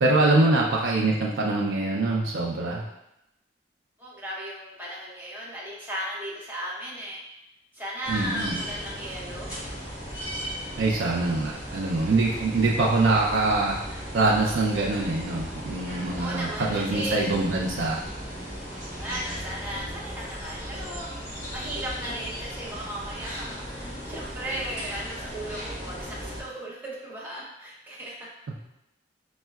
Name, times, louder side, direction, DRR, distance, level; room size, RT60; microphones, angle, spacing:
voice 1, 0.0-2.8 8.1-8.6 10.8-18.0, right 2 dB, 85° right, -3 dB, 0.4 m, -24 dB
voice 2, 4.0-7.2 7.7-9.6 16.2-17.3 18.7-28.3, right 1 dB, 10° right, -6 dB, 0.6 m, -36 dB
sound 1, 8.0-26.4, equal, 15° left, 1.3 m, -37 dB
4.3 x 2.1 x 2.3 m, 0.87 s
head